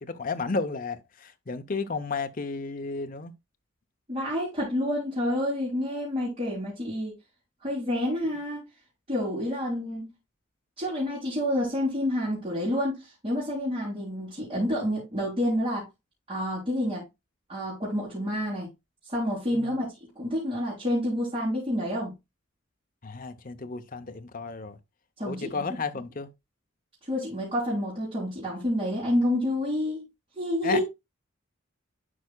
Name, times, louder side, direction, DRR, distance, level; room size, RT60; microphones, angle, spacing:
voice 1, 0.0-3.3 19.5-19.8 23.0-24.8 25.2-26.3 30.6-30.8, left 4 dB, 45° left, 0.7 m, -33 dB
voice 2, 4.1-7.1 7.6-8.6 9.1-10.1 10.8-15.9 16.3-17.0 17.5-18.7 19.1-19.9 20.2-22.1 25.2-25.6 27.1-30.1 30.3-30.8, left 1 dB, 30° right, 3.4 m, -28 dB
11.0 x 4.8 x 2.2 m
head